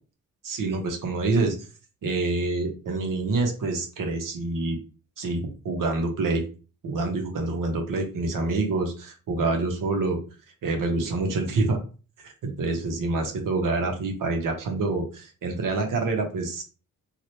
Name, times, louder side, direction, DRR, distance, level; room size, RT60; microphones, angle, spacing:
voice 1, 0.4-1.7 2.0-4.8 5.2-6.4 6.8-10.2 10.6-11.8 12.2-16.6, right 3 dB, 65° right, 3 dB, 1.0 m, -27 dB
3.0 x 2.4 x 2.8 m, 0.35 s
cardioid pair, 65°, 35 cm